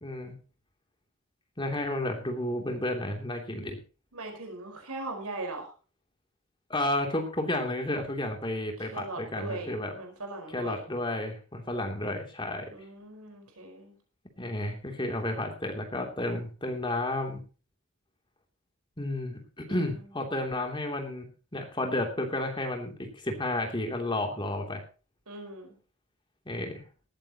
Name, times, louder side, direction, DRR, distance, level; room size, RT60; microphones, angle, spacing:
voice 1, 0.0-0.4 1.6-3.8 6.7-9.9 10.5-12.7 14.4-17.4 19.0-24.8 26.5-26.8, left 1 dB, 20° left, 3 dB, 3.0 m, -32 dB
voice 2, 4.1-5.7 8.8-10.8 12.7-13.9 19.7-20.1 25.3-25.7, right 2 dB, 90° right, 4 dB, 4.8 m, -40 dB
19.0 x 14.0 x 3.0 m, 0.35 s
head